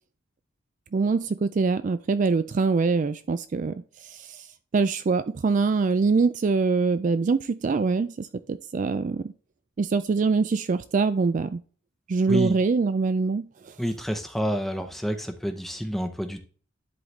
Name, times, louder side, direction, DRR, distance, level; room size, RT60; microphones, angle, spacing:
voice 1, 0.9-4.5 4.7-9.3 9.8-11.6 12.1-13.7, right 4 dB, 40° right, 12 dB, 0.3 m, -24 dB
voice 2, 13.8-16.4, equal, ahead, 6 dB, 0.8 m, -29 dB
10.5 x 4.0 x 3.3 m, 0.40 s
head